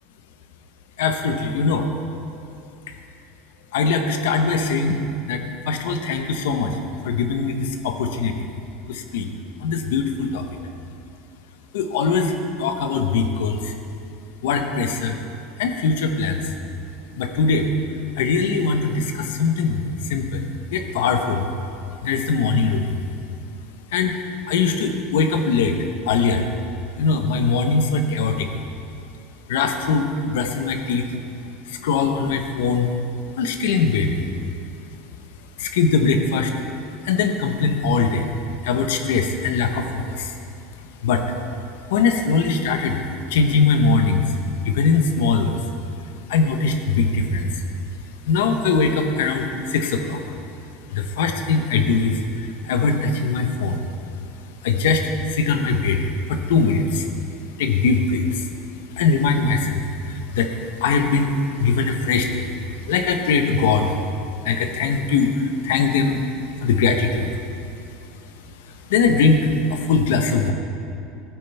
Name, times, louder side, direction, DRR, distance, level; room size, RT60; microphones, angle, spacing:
voice 1, 1.0-1.9 3.7-8.3 8.9-9.3 9.6-10.5 11.7-13.7 14.4-15.2 15.6-16.4 17.2-17.7 18.2-21.5 22.0-23.0 23.9-24.2 24.5-25.8 26.1-26.5 27.0-28.5 29.5-31.1 31.7-32.9 33.4-34.2 35.6-36.5 37.0-38.3 38.6-40.3 41.0-41.3 41.9-43.0 43.3-44.2 44.6-45.6 46.3-47.6 48.3-50.2 50.9-53.8 54.6-57.1 57.6-58.5 59.0-60.5 60.8-62.5 62.8-64.0 64.4-66.3 66.6-67.3 68.9-70.5, left 4 dB, 90° left, 6 dB, 0.9 m, -21 dB
13.0 x 8.9 x 3.4 m, 2.6 s
supercardioid pair, 125°, 0 cm